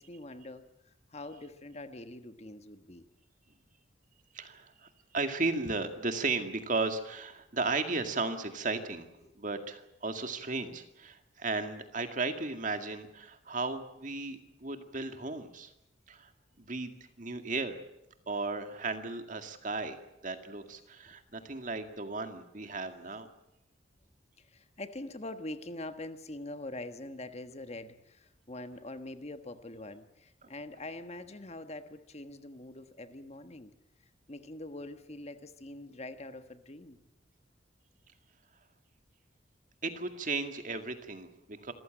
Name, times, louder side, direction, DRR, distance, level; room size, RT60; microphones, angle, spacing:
voice 1, 0.0-3.1 9.2-9.3 24.4-33.7 34.3-37.0, left 2 dB, 35° left, 9 dB, 1.4 m, -44 dB
voice 2, 4.3-9.1 9.4-15.7 16.1-16.3 16.6-16.9 17.2-17.8 18.3-20.0 20.2-23.3 30.4-30.5 39.8-41.7, right 3 dB, 45° right, 7 dB, 2.1 m, -35 dB
26.5 x 15.0 x 9.0 m, 0.86 s
head